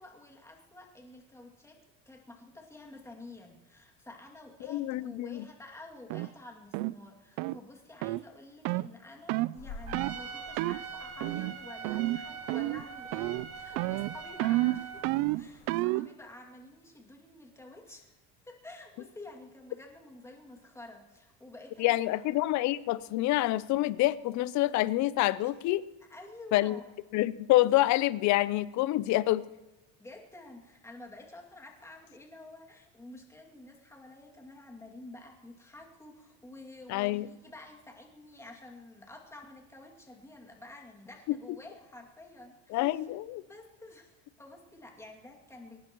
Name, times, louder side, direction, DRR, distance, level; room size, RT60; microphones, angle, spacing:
voice 1, 0.0-1.8 2.1-18.1 18.5-22.2 25.4-25.5 26.1-26.9 30.0-42.9 43.5-45.8, left 2 dB, 10° left, 0 dB, 2.4 m, -50 dB
voice 2, 4.7-5.5 21.8-25.8 26.5-26.8 27.1-29.4 36.9-37.3 42.7-43.4, left 16 dB, 55° left, 17 dB, 0.6 m, -27 dB
sound 1, 6.1-6.3 6.7-7.0 7.4-7.6 8.0-8.2 8.6-8.9 9.3-9.5 9.9-10.2 10.6-10.8 11.2-11.6 11.8-12.2 12.5-12.9 13.1-13.5 13.8-16.1, right 19 dB, 65° right, 0.5 m, -30 dB
sound 2, 9.5-15.8, left 3 dB, 70° left, 7.2 m, -51 dB
Trumpet, 9.9-15.1, right 5 dB, 45° right, 1.7 m, -43 dB
23.0 x 19.0 x 3.1 m, 1.1 s
cardioid pair, 130°, 35 cm